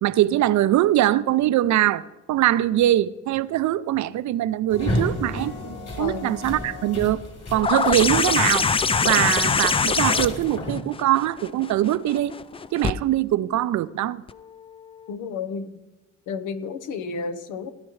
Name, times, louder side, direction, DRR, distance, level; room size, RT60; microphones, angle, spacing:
voice 1, 0.0-5.5 6.0-7.2 7.5-8.7 9.0-12.3 12.7-14.2, right 13 dB, 70° right, 0.5 m, -22 dB
sound 1, 4.7-10.7, left 1 dB, 55° left, 3.4 m, -32 dB
sound 2, 7.6-12.9 14.3-14.4, left 5 dB, 20° left, 0.3 m, -23 dB
voice 2, 15.1-15.7 16.3-17.7, left 5 dB, 90° left, 0.9 m, -31 dB
17.0 x 10.5 x 3.2 m
cardioid pair, 90°, 30 cm